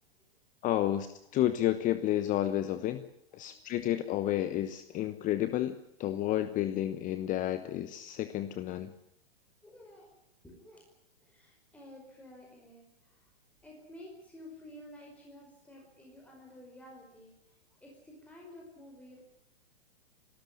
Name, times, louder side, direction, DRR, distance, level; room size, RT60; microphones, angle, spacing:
voice 1, 0.6-1.1 1.3-3.0 3.3-5.7 6.0-8.9, left 13 dB, 25° left, 11 dB, 1.1 m, -30 dB
voice 2, 3.5-3.9 9.6-10.2 10.4-10.9 11.2-13.3 13.6-19.2, left 1 dB, 5° left, -1 dB, 5.1 m, -52 dB
27.0 x 13.0 x 9.7 m, 0.78 s
hypercardioid pair, 130°, 30 cm